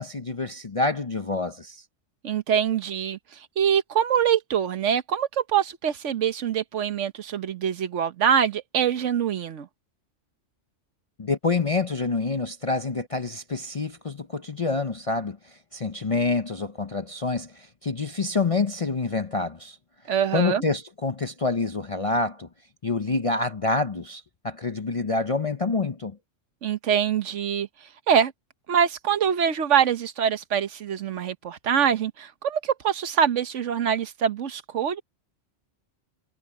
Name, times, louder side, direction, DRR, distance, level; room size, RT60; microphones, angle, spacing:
voice 1, 0.0-1.8 11.2-15.4 15.7-19.8 20.3-22.5 22.8-26.2, left 3 dB, 35° left, 0.7 m, -27 dB
voice 2, 2.2-3.2 3.6-9.7 20.1-20.6 26.6-27.7 28.1-28.3 28.7-35.0, right 8 dB, 70° right, 1.3 m, -24 dB
omnidirectional pair, 1.3 m